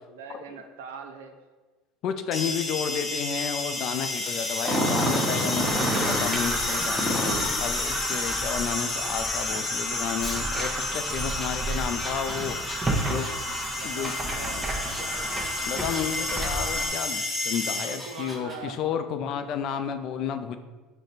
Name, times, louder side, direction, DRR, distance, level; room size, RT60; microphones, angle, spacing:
voice 1, 0.1-1.4 13.8-15.3 17.8-18.8, right 5 dB, 85° right, 5 dB, 0.5 m, -42 dB
voice 2, 2.0-13.3 13.8-14.4 15.7-20.6, left 8 dB, 55° left, 9 dB, 0.4 m, -32 dB
sound 1, 2.3-18.3, left 2 dB, 25° left, 0.9 m, -31 dB
Growling, 4.6-6.3 7.0-7.6 10.2-15.0 15.4-16.3 16.8-16.9 17.5-18.6, equal, ahead, 1.1 m, -30 dB
sound 2, 5.6-16.9, right 2 dB, 25° right, 0.7 m, -32 dB
5.0 x 2.1 x 4.0 m, 1.3 s
hypercardioid pair, 90°, 0 cm